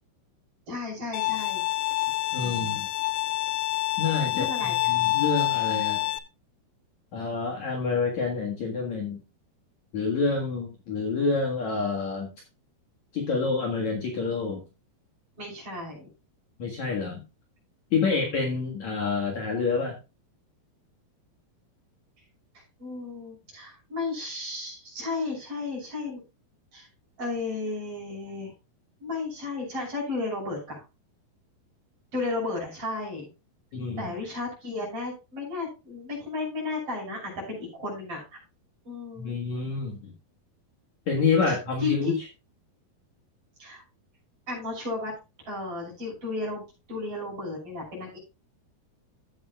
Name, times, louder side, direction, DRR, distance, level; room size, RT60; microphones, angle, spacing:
voice 1, 0.7-1.6 2.4-2.8 4.3-4.9 15.4-16.1 18.0-18.3 22.8-26.2 26.7-26.9 27.2-28.5 29.0-30.8 32.1-33.3 34.0-38.2 38.9-39.3 41.5-41.6 41.8-42.1 43.6-43.8 44.5-45.1 45.5-48.2, left 3 dB, 35° right, -2 dB, 7.0 m, -33 dB
Bowed string instrument, 1.1-6.2, left 17 dB, 75° left, 2.3 m, -27 dB
voice 2, 2.3-2.9 4.0-6.0 7.1-9.2 9.9-12.3 13.1-14.6 16.6-17.2 17.9-20.0 33.7-34.1 39.2-40.1 41.1-42.2, left 4 dB, 55° left, 0 dB, 2.6 m, -28 dB
15.0 x 8.5 x 2.3 m, 0.28 s
omnidirectional pair, 4.6 m